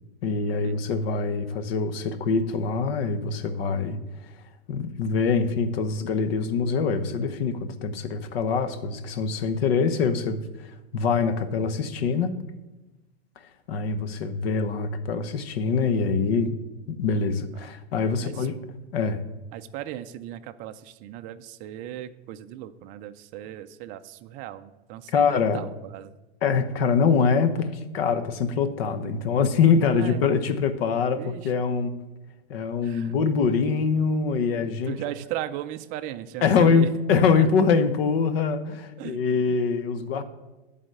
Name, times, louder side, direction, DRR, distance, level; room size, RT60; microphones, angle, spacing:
voice 1, 0.2-4.0 4.7-12.3 13.7-16.6 16.9-18.5 18.9-19.2 25.1-25.6 26.4-32.0 32.5-35.0 36.4-40.2, left 5 dB, 65° left, 10 dB, 1.1 m, -24 dB
voice 2, 19.5-26.1 29.9-30.3 31.2-31.5 32.8-33.2 34.9-36.9 37.3-37.5 39.0-39.6, right 12 dB, 25° right, 9 dB, 0.4 m, -37 dB
11.5 x 4.1 x 7.8 m, 1.1 s
supercardioid pair, 145°, 32 cm